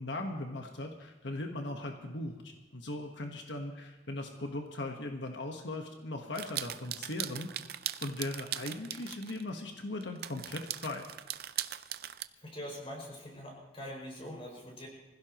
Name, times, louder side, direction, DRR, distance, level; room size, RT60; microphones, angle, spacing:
voice 1, 0.0-7.5 8.0-11.1, left 2 dB, 90° left, 3 dB, 1.3 m, -39 dB
sound 1, 6.3-9.4 10.0-12.2, right 12 dB, 60° right, 0.5 m, -39 dB
voice 2, 12.4-14.9, equal, 35° left, -1 dB, 5.8 m, -43 dB
24.5 x 16.0 x 3.0 m, 1.2 s
head